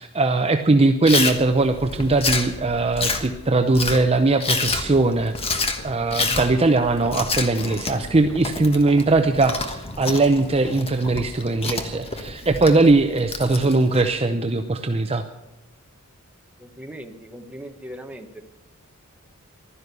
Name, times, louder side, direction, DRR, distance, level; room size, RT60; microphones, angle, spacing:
voice 1, 0.0-5.3 5.8-15.2, right 3 dB, 25° right, 6 dB, 0.6 m, -20 dB
Chewing mastication, 1.1-14.1, left 3 dB, 25° left, 1.3 m, -29 dB
Hammer, 5.4-6.8 7.2-8.6 9.3-11.3 11.9-12.8, left 2 dB, 70° left, 3.0 m, -44 dB
voice 2, 16.6-18.4, equal, 5° right, 4 dB, 1.2 m, -39 dB
15.5 x 12.5 x 6.8 m, 0.97 s
head